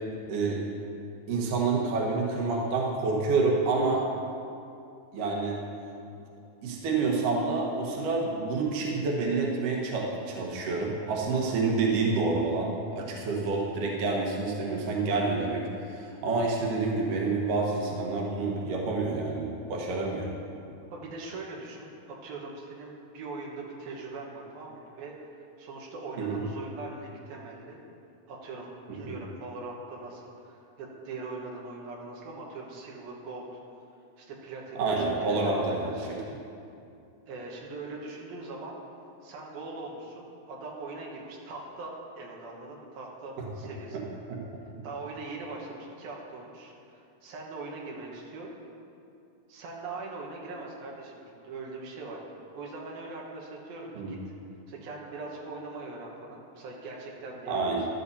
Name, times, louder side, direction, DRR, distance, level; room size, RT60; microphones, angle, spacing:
voice 1, 0.3-0.6 1.3-4.1 5.1-5.6 6.6-20.3 26.2-26.4 28.9-29.1 34.8-36.2 44.3-44.4 54.0-54.1 57.5-57.9, right 3 dB, 70° right, -2 dB, 2.8 m, -28 dB
voice 2, 20.9-21.9 22.2-25.3 25.6-27.8 28.3-33.6 34.2-36.3 37.3-38.8 39.2-44.2 44.8-48.5 49.5-52.2 52.5-54.2 54.7-57.9, right 3 dB, 85° right, -2 dB, 3.2 m, -41 dB
15.0 x 12.5 x 2.8 m, 2.6 s
omnidirectional pair, 4.1 m